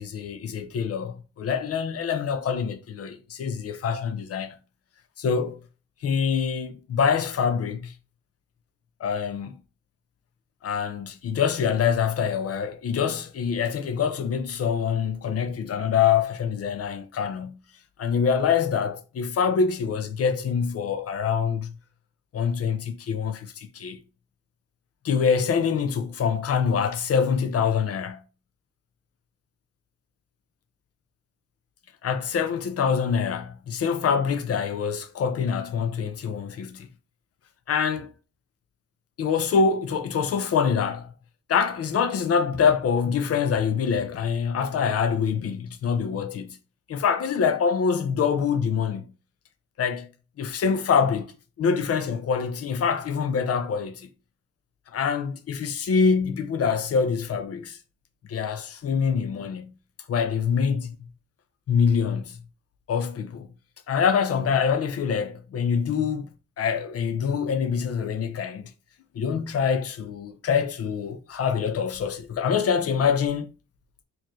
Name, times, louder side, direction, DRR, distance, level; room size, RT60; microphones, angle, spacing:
voice 1, 0.0-4.6 5.2-5.6 6.0-7.9 9.0-9.6 10.6-17.6 18.0-21.8 22.3-24.0 25.0-28.2 32.0-36.9 37.7-38.1 39.2-41.1 41.5-46.6 46.9-49.1 49.8-50.1 50.4-51.3 51.6-54.1 54.9-57.8 58.3-59.7 60.1-61.0 61.7-62.4 62.9-63.5 63.9-66.3 66.6-68.6 69.1-73.5, left 6 dB, 50° left, 0.7 m, -25 dB
4.2 x 3.0 x 3.0 m
cardioid pair, 90°, 30 cm